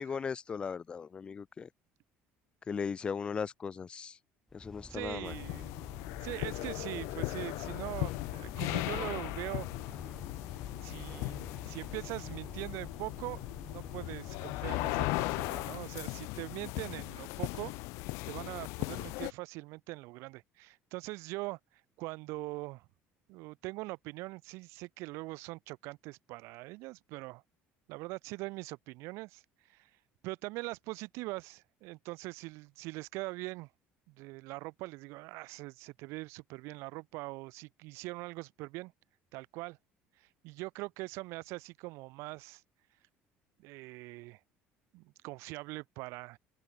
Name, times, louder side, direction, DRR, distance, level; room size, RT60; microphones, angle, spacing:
voice 1, 0.0-1.7 2.7-4.2 4.5-5.3, left 6 dB, 20° left, 0.5 m, -37 dB
sound 1, 4.5-15.7, left 1 dB, 5° left, 4.1 m, -50 dB
voice 2, 4.9-5.7 6.2-9.7 10.8-17.7 18.3-21.6 22.0-22.9 23.3-27.4 27.9-29.4 29.7-29.9 30.2-33.7 34.1-38.9 39.3-39.8 40.2-42.6 43.6-44.4 44.9-46.4, right 23 dB, 75° right, 2.4 m, -42 dB
sound 2, 5.2-19.3, left 25 dB, 80° left, 1.6 m, -38 dB
open air
cardioid pair, 165°, 5 cm